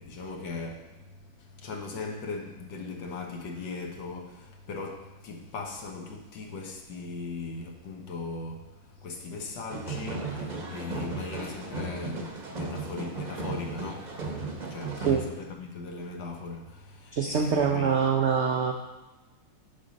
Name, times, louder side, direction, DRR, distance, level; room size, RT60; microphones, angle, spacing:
voice 1, 0.0-8.7 9.0-14.1 14.7-18.0, left 4 dB, 80° left, 1.7 m, -39 dB
sound 1, 9.7-15.2, right 3 dB, 35° right, 0.8 m, -36 dB
voice 2, 17.1-18.7, right 6 dB, 80° right, 0.6 m, -24 dB
7.8 x 5.3 x 5.2 m
omnidirectional pair, 2.0 m